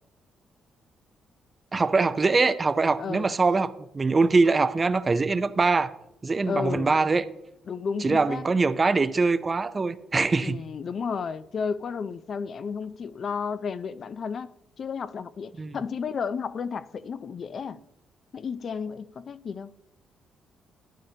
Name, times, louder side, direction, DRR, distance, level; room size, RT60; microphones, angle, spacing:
voice 1, 1.7-5.9 6.2-7.2 8.0-10.6 15.6-15.8, right 3 dB, 30° right, 0.5 m, -23 dB
voice 2, 3.0-3.3 6.4-6.9 7.7-8.4 10.4-17.8 18.3-19.7, left 6 dB, 50° left, 0.4 m, -32 dB
12.0 x 10.0 x 2.8 m
cardioid pair, 90°, 0 cm